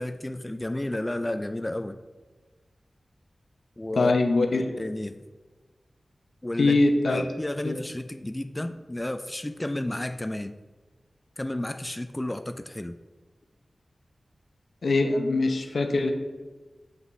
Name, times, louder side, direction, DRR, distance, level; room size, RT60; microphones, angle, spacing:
voice 1, 0.0-2.0 3.8-4.1 4.8-5.2 6.4-10.6 11.4-13.0, left 1 dB, 20° left, 8 dB, 0.3 m, -32 dB
voice 2, 4.0-4.7 6.6-7.2 7.6-7.8 14.8-16.1, left 2 dB, 80° left, 5 dB, 0.7 m, -22 dB
7.4 x 5.9 x 3.2 m, 1.3 s
wide cardioid pair, 60°, 0 cm